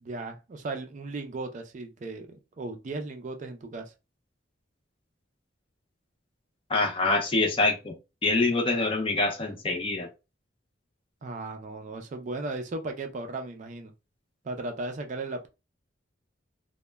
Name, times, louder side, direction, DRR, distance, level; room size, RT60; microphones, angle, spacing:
voice 1, 0.0-3.9 11.2-13.9 14.4-15.5, right 2 dB, 40° right, 0.3 m, -36 dB
voice 2, 6.7-7.9 8.2-10.1, left 3 dB, 30° left, 0.5 m, -25 dB
2.1 x 2.0 x 3.2 m
head